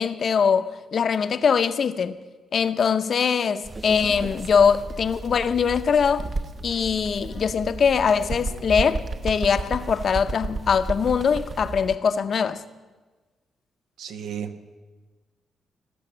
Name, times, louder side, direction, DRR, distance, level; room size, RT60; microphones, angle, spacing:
voice 1, 0.0-2.2 2.5-6.3 6.6-12.6, left 6 dB, 45° left, 0.6 m, -22 dB
sound 1, 3.6-12.0, right 3 dB, 20° right, 0.3 m, -37 dB
Bird, 3.9-7.5 7.9-11.7, right 3 dB, 40° right, 0.8 m, -34 dB
voice 2, 14.0-14.7, right 8 dB, 85° right, 1.1 m, -34 dB
18.0 x 6.9 x 8.7 m
cardioid pair, 155°, 0 cm